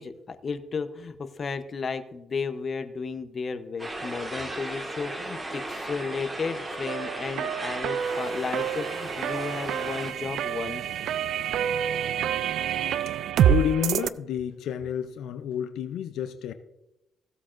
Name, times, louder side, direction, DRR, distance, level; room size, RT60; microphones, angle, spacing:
voice 1, 0.0-10.8, left 5 dB, 40° left, 9 dB, 0.8 m, -33 dB
sound 1, 3.8-10.1, right 2 dB, 20° right, 1.8 m, -36 dB
sound 2, 6.9-14.1, right 9 dB, 75° right, 0.4 m, -27 dB
voice 2, 13.4-16.5, left 9 dB, 80° left, 10 dB, 0.6 m, -30 dB
16.0 x 8.2 x 2.6 m, 0.94 s
cardioid pair, 90°, 0 cm